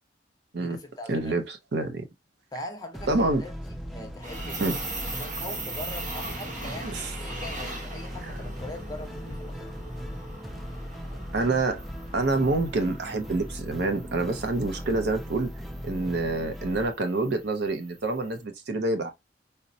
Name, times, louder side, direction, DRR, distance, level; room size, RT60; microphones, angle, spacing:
voice 1, 0.6-1.4 2.5-4.8 5.1-9.8, left 1 dB, 20° left, 0.7 m, -41 dB
voice 2, 1.1-2.1 3.1-3.4 4.6-4.8 6.8-7.1 11.3-11.8 12.1-15.5 15.8-19.1, right 2 dB, 60° right, 0.6 m, -27 dB
sound 1, 2.9-16.9, equal, ahead, 0.3 m, -39 dB
sound 2, 4.2-18.3, right 2 dB, 40° right, 0.9 m, -40 dB
4.0 x 2.1 x 2.5 m
head